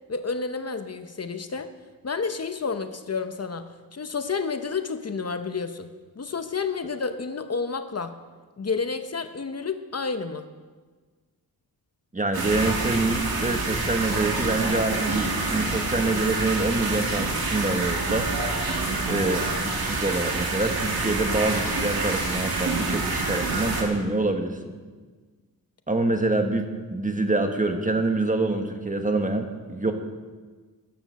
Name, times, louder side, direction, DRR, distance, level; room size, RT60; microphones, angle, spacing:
voice 1, 0.1-1.7 2.0-5.9 6.2-8.2 8.6-10.5, left 5 dB, 45° left, 9 dB, 0.8 m, -30 dB
voice 2, 12.1-18.3 19.1-24.7 25.9-29.9, right 2 dB, 20° right, 5 dB, 1.4 m, -26 dB
sound 1, 12.3-23.8, right 3 dB, 85° right, 2.6 m, -27 dB
14.0 x 10.5 x 6.4 m, 1.4 s
wide cardioid pair, 115°, 36 cm